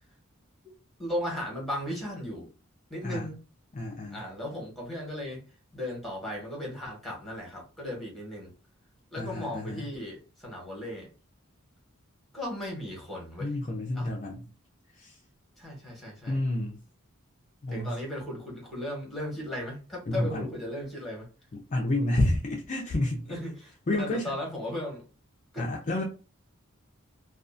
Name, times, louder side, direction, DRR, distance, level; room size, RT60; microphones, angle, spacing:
voice 1, 1.0-2.5 2.9-3.4 4.1-5.4 5.7-8.5 9.1-11.1 12.3-13.5 13.9-14.1 15.6-16.4 17.7-21.3 23.3-25.0 25.5-25.6, left 1 dB, ahead, 1.1 m, -36 dB
voice 2, 3.7-4.2 9.1-9.9 13.4-14.5 15.0-15.2 16.3-16.8 17.6-18.0 20.1-20.5 21.5-23.3 23.9-24.3 25.6-26.0, left 1 dB, 35° left, 0.4 m, -30 dB
2.4 x 2.4 x 2.4 m
head